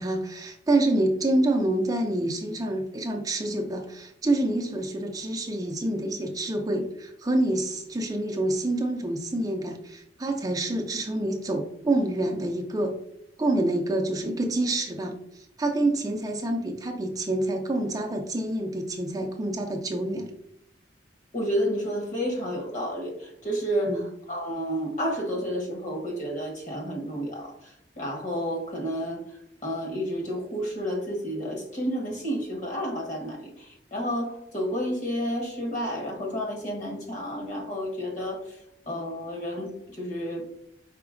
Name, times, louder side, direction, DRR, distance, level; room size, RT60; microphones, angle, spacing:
voice 1, 0.0-12.9 13.4-20.3 23.9-24.0, right 1 dB, 20° right, 3 dB, 0.4 m, -27 dB
voice 2, 21.3-29.2 29.6-38.6 38.9-40.4, equal, 45° left, 0 dB, 1.1 m, -31 dB
5.0 x 3.8 x 2.5 m, 0.76 s
head